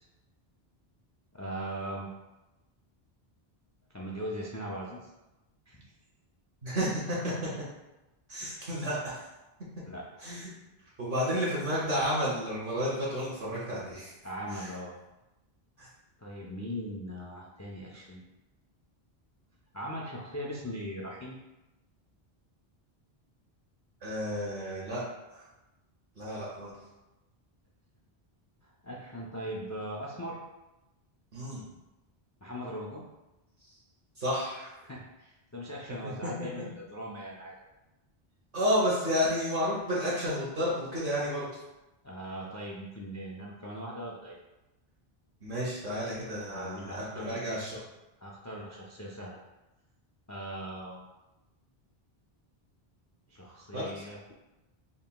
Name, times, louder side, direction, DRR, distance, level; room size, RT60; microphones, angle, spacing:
voice 1, 1.3-2.1 3.9-5.1 5.7-5.8 7.2-7.3 8.4-8.7 9.9-10.4 14.2-15.0 16.2-18.2 19.7-21.4 28.6-30.4 32.4-33.0 34.8-37.5 42.0-44.4 46.5-47.6 48.2-49.4 50.3-51.1 53.3-54.3, equal, 30° left, -3 dB, 0.3 m, -40 dB
voice 2, 6.6-7.3 8.3-9.2 10.2-10.5 11.0-14.1 14.5-14.7 15.8-15.9 24.0-25.0 25.3-25.4 26.2-26.7 31.3-31.6 34.2-34.8 36.4-36.5 38.5-41.4 45.4-47.8 53.7-54.0, equal, 60° right, -7 dB, 1.1 m, -31 dB
5.3 x 2.9 x 2.2 m, 1.0 s
omnidirectional pair, 1.0 m